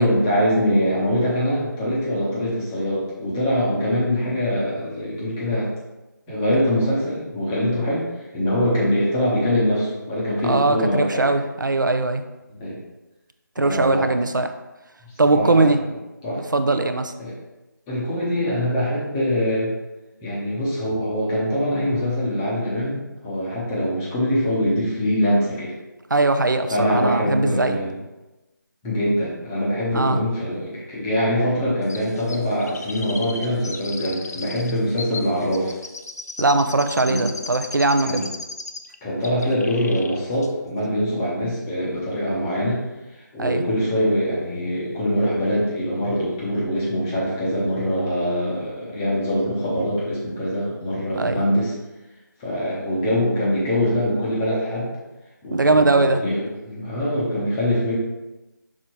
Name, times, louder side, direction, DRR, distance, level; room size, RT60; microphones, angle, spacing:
voice 1, 0.0-5.7 6.3-11.3 12.5-12.8 13.6-14.2 15.0-15.7 16.2-16.4 17.2-17.3 17.9-19.7 20.2-25.7 26.7-28.0 28.8-35.7 37.1-37.3 38.0-38.3 39.0-42.8 43.1-51.7 52.4-54.9 55.4-57.9, equal, 5° left, -7 dB, 0.6 m, -23 dB
voice 2, 10.4-12.2 13.6-14.5 15.2-15.8 16.5-17.1 26.1-27.8 29.9-30.2 36.4-38.2 43.4-43.6 51.2-51.4 55.5-56.2, right 2 dB, 70° right, 8 dB, 0.6 m, -20 dB
Chirp tweet, 31.9-39.0 39.2-40.2 40.4-40.5, left 3 dB, 55° left, 0.6 m, -36 dB
6.2 x 4.1 x 4.4 m, 1.0 s
figure-of-eight pair, 170°, 11 cm